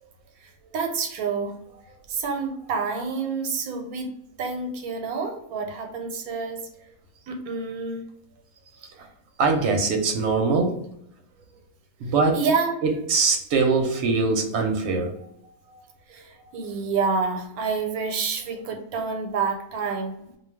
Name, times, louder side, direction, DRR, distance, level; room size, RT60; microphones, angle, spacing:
voice 1, 0.4-4.1 4.4-6.6 7.3-8.0 9.0-9.1 12.3-12.7 15.4-15.8 16.1-20.4, right 5 dB, 90° right, 3 dB, 1.1 m, -28 dB
voice 2, 9.4-10.8 12.0-12.4 12.8-15.1, right 4 dB, 60° right, 2 dB, 0.8 m, -22 dB
2.3 x 2.3 x 3.3 m, 0.75 s
omnidirectional pair, 1.5 m